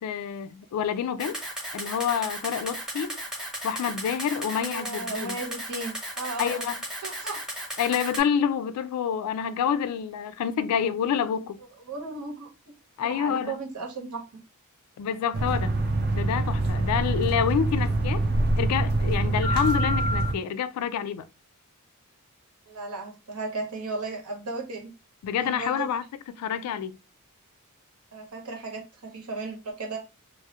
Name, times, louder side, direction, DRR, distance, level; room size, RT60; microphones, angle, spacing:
voice 1, 0.0-1.4 1.7-3.2 3.6-5.4 6.4-6.8 7.8-11.6 13.0-13.6 15.0-15.8 16.1-18.2 18.6-21.3 25.2-27.0, left 8 dB, 85° left, 0.3 m, -28 dB
Camera, 1.2-8.2, right 1 dB, 5° right, 0.6 m, -35 dB
voice 2, 4.6-6.7 7.0-7.4 11.9-12.7 13.0-14.4 22.7-24.9 25.3-25.9 28.1-30.0, right 3 dB, 80° right, 0.8 m, -35 dB
sound 1, 15.3-20.3, right 2 dB, 45° right, 0.5 m, -25 dB
2.3 x 2.0 x 2.8 m
head